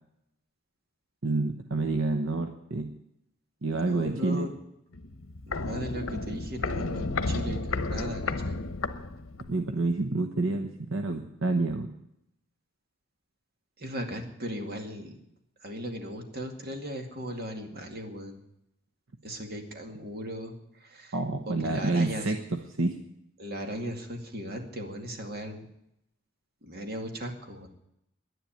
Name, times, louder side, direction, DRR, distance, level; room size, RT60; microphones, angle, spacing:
voice 1, 1.2-2.9 3.6-4.5 9.5-11.9 21.1-23.0, right 3 dB, 70° right, 6 dB, 1.0 m, -28 dB
voice 2, 3.7-4.6 5.5-8.6 13.8-15.2 15.6-18.4 19.2-21.1 21.5-22.4 23.4-25.7 26.6-27.7, equal, 50° right, 4 dB, 2.3 m, -37 dB
Walk footsteps, 4.9-9.6 9.9-10.0, left 3 dB, 75° left, 0.9 m, -32 dB
11.0 x 10.5 x 9.2 m, 0.80 s
head